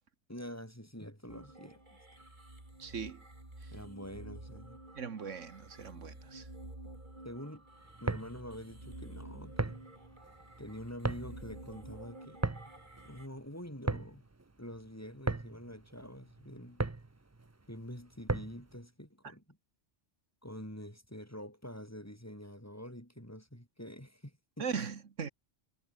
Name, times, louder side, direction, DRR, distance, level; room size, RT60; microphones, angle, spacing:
voice 1, 0.3-2.2 3.7-4.8 7.2-7.7 8.0-9.8 10.6-12.4 13.0-14.3 14.6-16.8 17.7-19.6 20.4-24.7, equal, 10° left, 5.5 m, -46 dB
sound 1, 1.3-13.3, right 1 dB, 40° right, 5.0 m, -51 dB
voice 2, 2.8-3.2 3.6-3.7 4.9-6.5 19.2-19.3 24.6-25.3, right 6 dB, 85° right, 1.9 m, -39 dB
sound 2, 7.8-18.7, right 3 dB, 15° right, 0.6 m, -38 dB
omnidirectional pair, 1.2 m